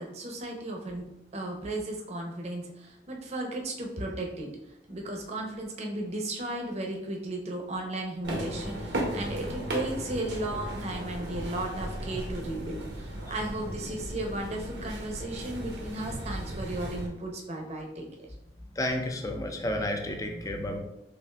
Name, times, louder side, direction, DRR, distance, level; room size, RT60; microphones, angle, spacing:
voice 1, 0.0-4.5 4.9-18.0, right 1 dB, 40° right, 1 dB, 0.6 m, -35 dB
sound 1, 8.2-17.1, right 1 dB, 75° right, 0.7 m, -36 dB
voice 2, 18.8-20.8, left 1 dB, 20° left, 3 dB, 0.4 m, -31 dB
5.5 x 2.5 x 2.3 m, 0.86 s
head